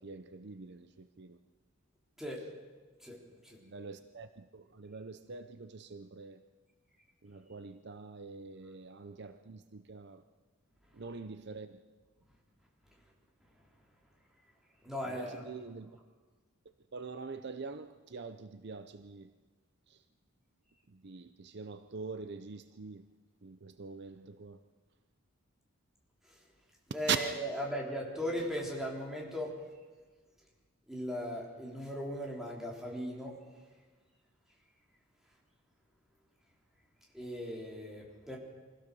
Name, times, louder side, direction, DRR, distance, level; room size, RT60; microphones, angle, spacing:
voice 1, 0.0-1.4 3.6-6.4 7.2-10.2 10.9-11.8 15.0-15.9 16.9-19.3 19.9-20.0 20.9-23.1 23.4-24.6 27.1-27.2, right 6 dB, 50° right, 10 dB, 0.6 m, -43 dB
voice 2, 14.8-15.5 26.9-29.6 30.9-33.4 37.1-38.4, equal, ahead, -3 dB, 3.5 m, -38 dB
24.0 x 16.5 x 6.9 m, 1.4 s
head